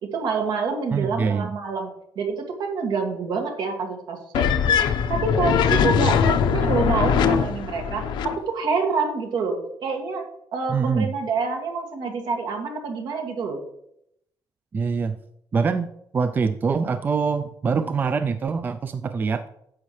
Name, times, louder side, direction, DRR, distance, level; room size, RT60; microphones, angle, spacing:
voice 1, 0.0-4.8 5.1-10.3 10.5-13.6, right 4 dB, 65° right, 3 dB, 2.1 m, -27 dB
voice 2, 0.9-1.5 10.7-11.1 14.7-15.2 15.5-15.9 16.1-19.5, right 5 dB, 25° right, 9 dB, 0.4 m, -24 dB
sound 1, 4.3-8.4, left 7 dB, 75° left, 0.8 m, -21 dB
10.5 x 7.5 x 3.2 m, 0.74 s
cardioid pair, 170°, 8 cm